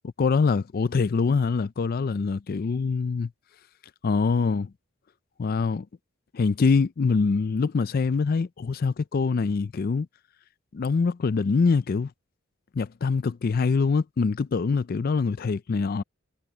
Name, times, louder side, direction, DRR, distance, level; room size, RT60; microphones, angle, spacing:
voice 1, 0.2-3.3 4.0-4.7 5.4-5.9 6.3-10.1 10.7-12.1 12.7-16.0, left 4 dB, 45° left, 0.4 m, -24 dB
head